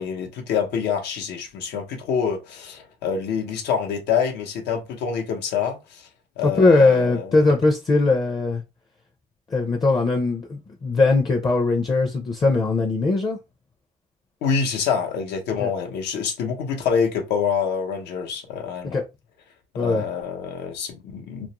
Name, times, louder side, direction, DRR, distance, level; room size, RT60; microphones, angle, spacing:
voice 1, 0.0-6.1 6.4-7.4 14.4-19.0 19.7-21.5, left 6 dB, 85° left, 0.8 m, -26 dB
voice 2, 6.4-8.6 9.5-13.4 15.6-15.7 18.9-19.0 19.8-20.0, left 3 dB, 25° left, 0.5 m, -20 dB
2.5 x 2.0 x 2.9 m
cardioid pair, 110°, 17 cm